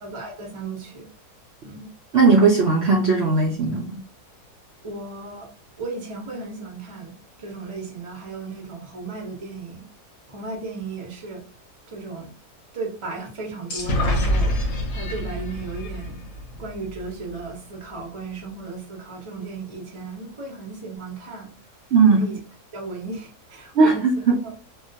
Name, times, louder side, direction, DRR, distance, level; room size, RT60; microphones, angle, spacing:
voice 1, 0.0-1.1 1.6-1.9 4.8-5.5 5.8-9.9 10.3-11.5 11.9-12.3 12.7-14.6 14.9-16.2 16.5-21.5 22.1-22.4 22.7-24.1 24.4-24.5, right 3 dB, 35° right, -1 dB, 0.5 m, -35 dB
voice 2, 2.1-4.0 21.9-22.2 23.8-24.4, right 4 dB, 85° right, -2 dB, 0.5 m, -17 dB
sound 1, 13.7-17.4, equal, 65° left, 0.9 m, -26 dB
2.4 x 2.2 x 2.5 m, 0.37 s
omnidirectional pair, 1.7 m